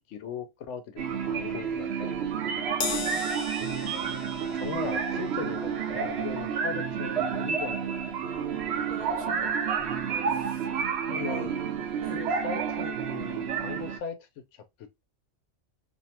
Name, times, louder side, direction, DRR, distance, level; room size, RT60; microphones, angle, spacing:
voice 1, 0.0-2.1 4.5-8.2 9.4-9.5 11.1-11.5 12.1-15.0, left 6 dB, 75° left, 0.9 m, -38 dB
sound 1, 1.0-14.0, right 7 dB, 65° right, 0.8 m, -30 dB
Crash cymbal, 2.8-9.4 9.8-10.0 11.0-11.1, left 6 dB, 60° left, 0.5 m, -40 dB
voice 2, 2.9-3.3 8.7-9.5 10.3-10.6 11.2-11.5 12.0-12.2, right 3 dB, 35° right, 0.6 m, -42 dB
2.6 x 2.1 x 2.7 m
omnidirectional pair, 1.2 m